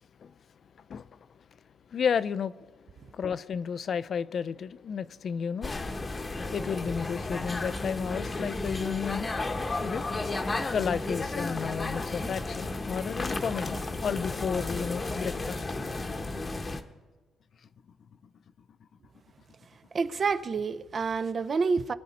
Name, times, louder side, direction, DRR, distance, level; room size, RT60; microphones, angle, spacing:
voice 1, 1.9-2.5 3.1-5.8 6.1-6.2 6.5-9.3 9.7-10.0 10.7-15.6, left 7 dB, 55° left, 0.4 m, -32 dB
sound 1, 5.6-16.8, left 2 dB, 30° left, 1.0 m, -33 dB
voice 2, 19.9-21.9, right 4 dB, 45° right, 0.6 m, -28 dB
22.5 x 9.6 x 4.2 m
cardioid pair, 90°, 0 cm